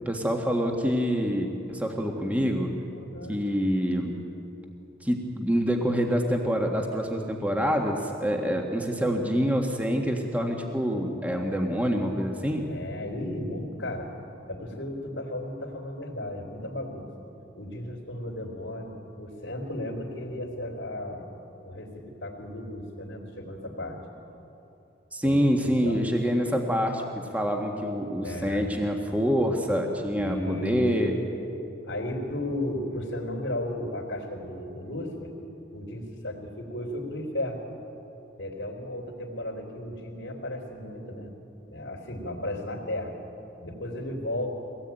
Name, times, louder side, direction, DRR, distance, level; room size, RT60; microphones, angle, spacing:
voice 1, 0.0-2.7 3.3-4.1 5.0-12.6 25.1-31.2, equal, 10° right, 2 dB, 1.6 m, -26 dB
voice 2, 2.9-3.4 12.7-14.1 14.5-17.1 17.6-21.3 21.6-24.0 25.2-26.0 28.2-29.0 30.2-30.9 31.8-35.3 35.7-37.6 38.4-41.3 41.7-43.2 43.6-44.5, left 1 dB, 90° left, -7 dB, 3.4 m, -35 dB
23.5 x 17.5 x 9.1 m, 3.0 s
head